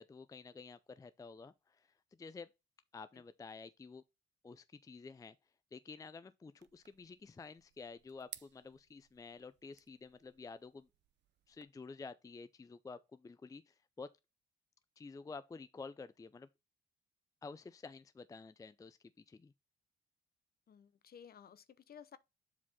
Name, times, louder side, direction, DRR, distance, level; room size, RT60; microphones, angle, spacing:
voice 1, 0.0-1.9 2.2-2.5 2.9-4.0 4.4-5.4 5.7-10.9 11.5-14.1 15.0-16.5 17.4-19.0 19.3-19.5, left 4 dB, 15° left, 0.4 m, -50 dB
sound 1, 6.6-11.6, right 11 dB, 60° right, 0.7 m, -58 dB
voice 2, 20.7-22.2, left 8 dB, 50° left, 0.8 m, -56 dB
7.5 x 4.1 x 4.2 m
cardioid pair, 90°, 20 cm